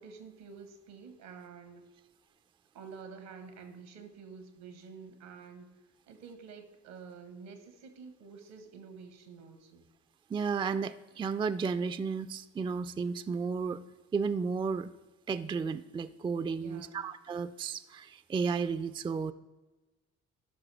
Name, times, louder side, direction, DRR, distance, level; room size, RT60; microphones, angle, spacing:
voice 1, 0.0-1.8 2.7-5.7 6.1-9.8 16.6-17.0, right 5 dB, 80° right, 8 dB, 1.3 m, -49 dB
voice 2, 10.3-13.8 14.1-14.9 15.3-19.3, right 5 dB, 15° right, 13 dB, 0.3 m, -33 dB
13.0 x 5.9 x 3.4 m, 1.1 s
hypercardioid pair, 55°, 35 cm